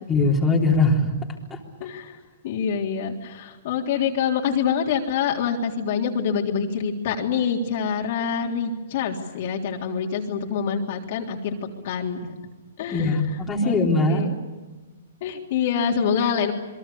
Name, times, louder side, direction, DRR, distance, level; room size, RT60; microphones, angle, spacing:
voice 1, 0.1-1.1 1.5-1.6 12.9-14.2, left 2 dB, 10° left, -2 dB, 3.7 m, -21 dB
voice 2, 1.8-2.2 2.4-11.5 11.8-12.2 12.8-13.2 13.6-13.8 14.1-14.3 15.2-16.5, left 7 dB, 50° left, 0 dB, 3.5 m, -26 dB
28.0 x 22.5 x 7.0 m, 1.2 s
hypercardioid pair, 150°, 0 cm